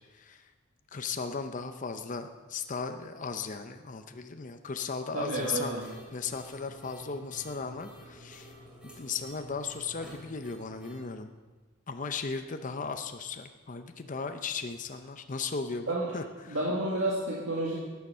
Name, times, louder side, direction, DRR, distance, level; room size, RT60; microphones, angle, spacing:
voice 1, 0.9-5.7 6.1-8.5 8.8-11.3 11.9-16.6, left 5 dB, 40° left, 7 dB, 0.6 m, -36 dB
voice 2, 5.1-5.8 15.8-16.1 16.5-17.8, right 2 dB, 70° right, -5 dB, 2.0 m, -30 dB
sound 1, 5.3-11.1, equal, 5° right, 2.9 m, -50 dB
13.5 x 9.5 x 5.6 m, 1.3 s
head